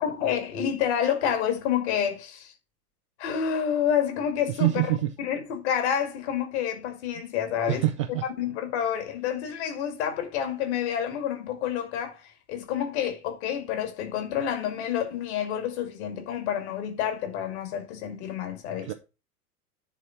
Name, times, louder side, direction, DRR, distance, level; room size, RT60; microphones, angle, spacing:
voice 1, 0.0-2.5 3.2-7.8 8.2-18.9, left 9 dB, 45° left, 2.2 m, -29 dB
voice 2, 4.5-5.1 7.7-8.2 18.8-18.9, right 15 dB, 25° right, 0.3 m, -25 dB
9.9 x 4.0 x 5.7 m
figure-of-eight pair, 95°, 45 cm